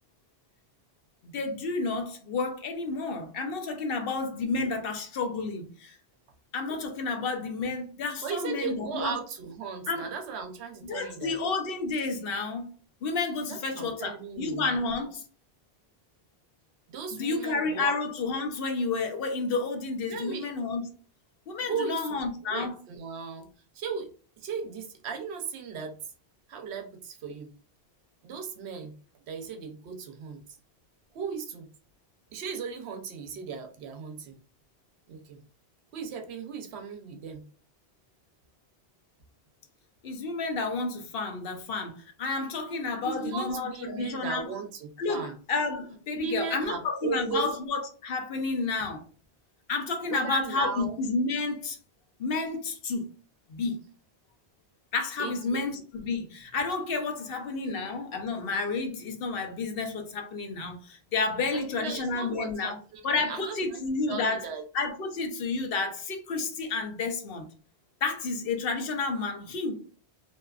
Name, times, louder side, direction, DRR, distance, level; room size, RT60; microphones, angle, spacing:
voice 1, 1.2-6.0 6.5-9.2 9.9-10.1 10.8-12.7 13.0-15.2 17.1-20.9 21.5-22.7 40.0-44.5 45.0-49.0 49.7-51.8 52.2-53.1 53.5-53.8 54.9-62.8 63.0-64.5 64.7-67.5 68.0-69.7, left 3 dB, 65° left, 5 dB, 0.8 m, -31 dB
voice 2, 8.2-11.4 13.5-14.7 16.9-17.9 20.1-20.5 21.6-22.2 22.4-23.5 23.7-24.1 24.4-26.0 26.5-27.5 28.2-28.9 29.3-30.4 31.1-31.7 32.3-34.3 35.1-35.4 35.9-37.4 43.0-45.3 46.1-47.5 50.0-51.0 55.2-55.6 61.5-63.8 64.1-64.6, right 6 dB, 80° right, 4 dB, 0.9 m, -36 dB
2.6 x 2.3 x 2.3 m, 0.39 s
omnidirectional pair, 1.1 m